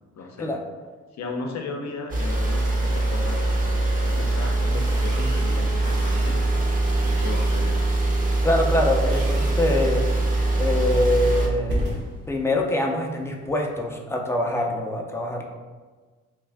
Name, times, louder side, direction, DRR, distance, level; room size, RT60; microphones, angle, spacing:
voice 1, 0.2-0.6 1.1-3.7 4.0-6.5 7.0-7.8, left 3 dB, 60° left, 2 dB, 0.7 m, -35 dB
sound 1, 2.1-11.5, right 2 dB, 25° right, 0.8 m, -23 dB
sound 2, 4.8-13.9, equal, 65° right, 1.2 m, -37 dB
voice 2, 8.4-10.0 10.6-11.8 12.3-15.4, left 1 dB, 10° left, 1 dB, 0.5 m, -24 dB
3.2 x 2.4 x 3.4 m, 1.4 s
cardioid pair, 70°, 31 cm